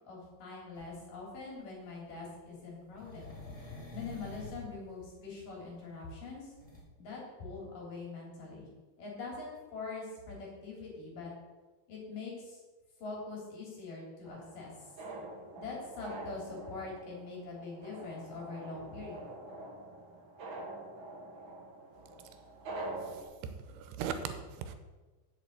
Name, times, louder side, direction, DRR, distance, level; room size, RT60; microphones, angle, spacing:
voice 1, 0.0-3.3 3.9-6.5 7.0-8.7 9.0-11.3 11.9-12.6 13.0-14.7 15.6-19.2, left 3 dB, 55° left, -3 dB, 4.6 m, -43 dB
sound 1, 0.7-0.9 2.9-4.7 6.6-6.8, left 2 dB, 20° left, 1.9 m, -46 dB
sound 2, 14.2-23.2, right 2 dB, 50° right, 1.5 m, -45 dB
voice 2, 23.1-24.8, right 7 dB, 85° right, 9 dB, 2.9 m, -39 dB
7.8 x 7.6 x 8.2 m, 1.3 s
omnidirectional pair, 4.7 m